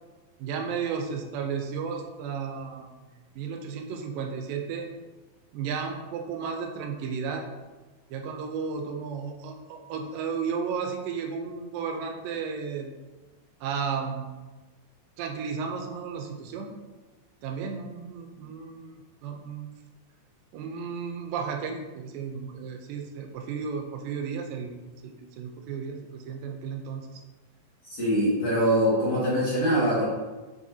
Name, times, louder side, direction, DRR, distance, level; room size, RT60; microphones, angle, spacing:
voice 1, 0.4-2.9 3.3-4.9 5.5-7.5 8.1-13.0 13.6-14.3 15.2-16.7 17.4-19.7 20.5-24.8 25.0-27.2, right 6 dB, 75° right, 4 dB, 2.3 m, -33 dB
voice 2, 27.9-30.1, equal, 45° left, -9 dB, 2.7 m, -23 dB
7.6 x 5.9 x 2.8 m, 1.2 s
omnidirectional pair, 4.3 m